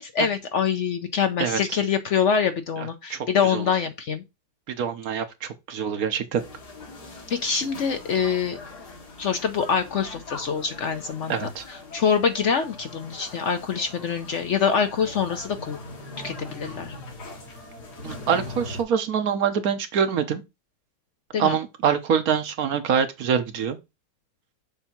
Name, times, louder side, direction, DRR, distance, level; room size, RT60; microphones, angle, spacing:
voice 1, 0.0-4.2 7.3-8.6 9.2-15.8 16.2-16.9 21.3-21.6, left 6 dB, 60° left, 0.8 m, -25 dB
voice 2, 1.4-1.8 2.8-3.7 4.7-6.4 11.3-11.6 18.0-20.4 21.4-23.8, right 7 dB, 65° right, 1.3 m, -25 dB
sound 1, 6.4-18.8, left 2 dB, 80° left, 2.5 m, -41 dB
7.0 x 2.8 x 5.7 m
omnidirectional pair, 1.7 m